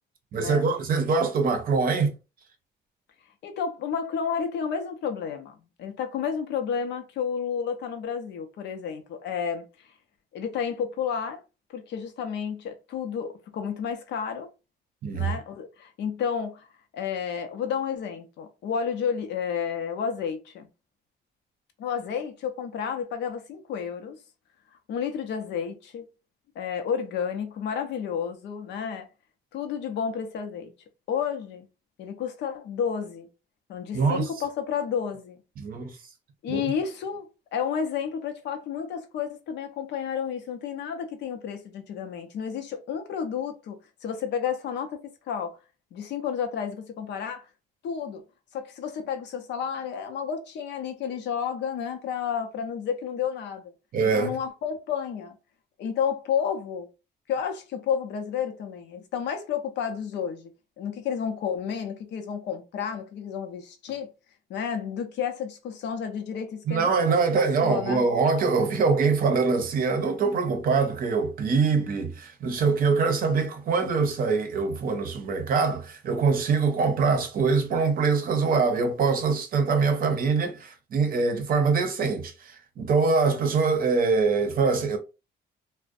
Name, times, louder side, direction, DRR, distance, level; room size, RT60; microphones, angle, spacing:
voice 1, 0.3-2.1 15.0-15.4 33.9-34.3 35.6-36.0 36.5-36.6 53.9-54.4 66.7-85.0, right 4 dB, 55° right, 0.6 m, -24 dB
voice 2, 3.4-9.6 10.3-11.4 11.7-14.5 15.1-16.7 16.9-20.7 21.8-24.2 24.9-26.1 26.6-29.1 29.5-30.7 31.1-31.7 32.0-33.3 33.7-35.4 36.4-45.0 45.3-45.6 45.9-47.5 47.8-48.2 48.5-53.7 54.0-55.4 55.8-56.9 57.3-60.5 60.8-64.1 64.5-68.0, left 7 dB, 80° left, 0.6 m, -31 dB
2.5 x 2.1 x 2.4 m
cardioid pair, 135°, 18 cm